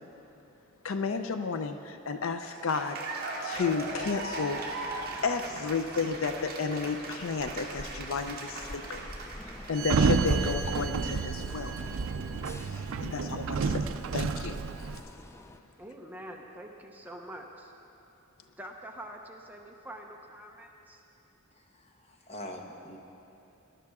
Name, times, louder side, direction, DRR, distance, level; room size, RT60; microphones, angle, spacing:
voice 1, 0.8-4.6 5.2-9.1 9.7-11.7 12.7-14.6, left 4 dB, 65° left, 8 dB, 0.5 m, -32 dB
Cheering / Applause, 2.4-10.0, right 3 dB, 45° right, 1.5 m, -39 dB
sound 1, 3.5-15.6, left 1 dB, 15° left, 0.4 m, -47 dB
Sliding door, 9.8-15.0, right 5 dB, 70° right, 0.4 m, -30 dB
voice 2, 15.8-17.7 18.6-21.0, right 1 dB, 10° right, 1 dB, 0.8 m, -45 dB
voice 3, 21.5-23.0, left 1 dB, 30° left, 2 dB, 1.1 m, -44 dB
19.5 x 11.5 x 3.6 m, 2.9 s
head